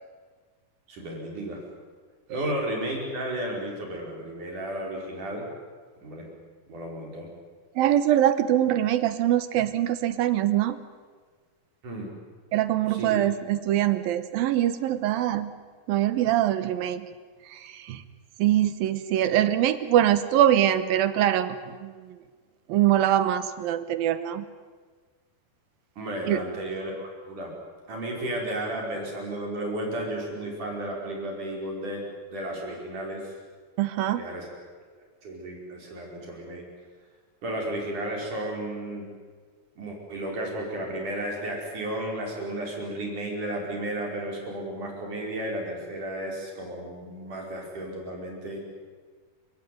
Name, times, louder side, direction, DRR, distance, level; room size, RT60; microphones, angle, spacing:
voice 1, 0.9-1.6 2.3-5.5 6.0-6.3 6.7-7.3 11.8-12.1 12.9-13.2 26.0-27.5 27.9-32.0 32.3-33.3 34.1-34.5 35.2-36.6 37.4-39.1 39.8-48.6, right 1 dB, 50° right, -1 dB, 6.7 m, -33 dB
voice 2, 7.8-10.8 12.5-15.5 15.9-17.1 17.5-18.0 18.4-22.1 22.7-24.4 26.3-26.4 33.8-34.2, right 12 dB, 75° right, 12 dB, 2.7 m, -23 dB
29.5 x 18.0 x 9.5 m, 1.5 s
omnidirectional pair, 4.5 m